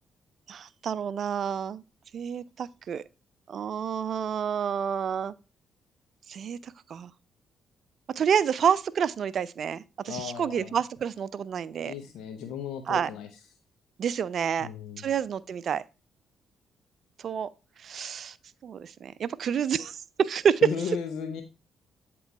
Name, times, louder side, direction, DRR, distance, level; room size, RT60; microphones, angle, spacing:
voice 1, 0.5-1.8 2.1-3.0 3.5-5.3 6.3-7.1 8.2-11.9 12.9-13.1 14.0-14.7 15.0-15.8 17.2-17.5 17.8-18.4 18.6-20.6, right 7 dB, 55° right, 0.4 m, -29 dB
voice 2, 10.1-10.7 11.8-13.3 14.6-15.1 20.6-21.4, left 7 dB, 65° left, 0.8 m, -35 dB
7.9 x 3.1 x 4.5 m
figure-of-eight pair, 40°, 0 cm